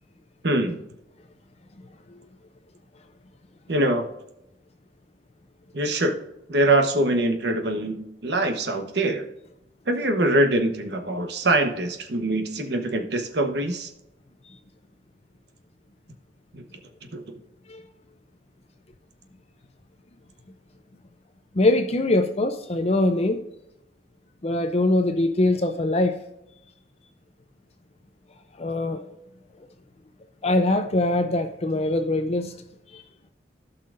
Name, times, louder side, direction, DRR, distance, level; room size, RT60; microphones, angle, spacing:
voice 1, 0.4-0.8 3.7-4.0 5.7-6.2 6.5-9.2 9.9-13.9 16.5-16.6 17.1-17.2, right 1 dB, 60° right, 5 dB, 1.1 m, -23 dB
voice 2, 21.5-23.4 24.4-26.2 28.6-29.0 30.4-32.5 32.9-33.0, left 2 dB, 35° left, 7 dB, 0.5 m, -22 dB
15.5 x 5.7 x 2.6 m, 0.87 s
head